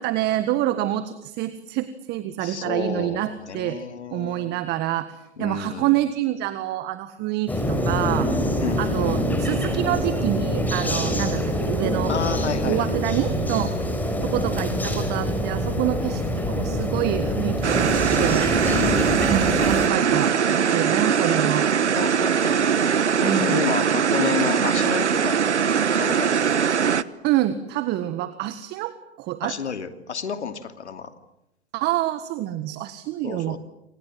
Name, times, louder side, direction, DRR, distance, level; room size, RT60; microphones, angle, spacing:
voice 1, 0.0-3.8 4.1-8.5 8.8-12.1 12.6-13.7 14.0-18.5 19.2-21.7 23.2-23.6 27.2-29.6 31.7-33.6, right 13 dB, 30° right, 12 dB, 1.6 m, -27 dB
voice 2, 2.4-4.5 5.4-5.9 8.6-9.1 12.1-12.9 18.6-19.3 22.0-22.7 23.1-25.4 26.0-26.4 29.4-31.1 33.2-33.6, left 6 dB, 80° left, 9 dB, 2.9 m, -30 dB
sound 1, 7.5-19.9, equal, 5° left, 4.7 m, -25 dB
sound 2, 17.6-27.0, right 7 dB, 85° right, 1.3 m, -21 dB
29.0 x 26.5 x 7.7 m, 0.84 s
hypercardioid pair, 120°, 33 cm